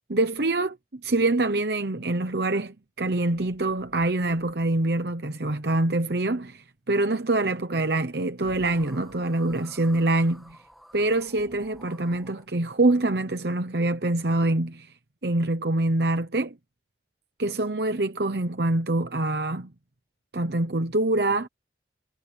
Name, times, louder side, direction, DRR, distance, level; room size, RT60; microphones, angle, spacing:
voice 1, 0.1-10.6 10.9-14.9 15.2-16.6 17.4-19.7 20.3-21.5, right 2 dB, 60° right, 1.0 m, -25 dB
sound 1, 3.3-4.9 8.1-8.2 8.4-12.5, equal, ahead, 2.0 m, -52 dB
head